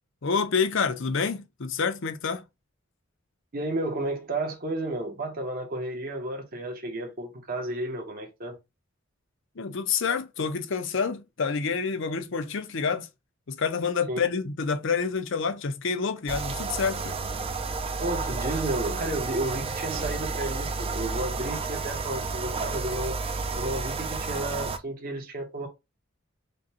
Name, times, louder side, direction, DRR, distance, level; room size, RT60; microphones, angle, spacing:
voice 1, 0.2-2.4 9.6-13.1 13.5-17.2, left 5 dB, 65° left, 0.6 m, -28 dB
voice 2, 3.5-8.6 14.1-14.2 18.0-23.1 23.6-25.7, right 1 dB, 45° right, 1.0 m, -32 dB
sound 1, 16.3-24.8, right 4 dB, 30° right, 0.4 m, -31 dB
5.1 x 2.3 x 2.8 m
head